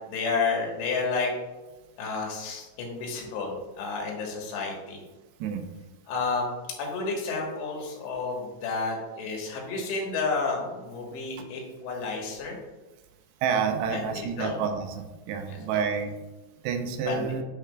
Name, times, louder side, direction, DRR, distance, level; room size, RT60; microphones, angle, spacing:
voice 1, 0.1-1.3 2.0-5.0 6.1-6.5 6.8-12.6 13.9-14.6 15.7-15.8 17.1-17.3, left 4 dB, 90° left, -1 dB, 3.6 m, -31 dB
voice 2, 13.4-16.2 16.6-17.4, right 6 dB, 85° right, 5 dB, 2.8 m, -29 dB
9.8 x 4.6 x 2.3 m, 1.1 s
omnidirectional pair, 4.9 m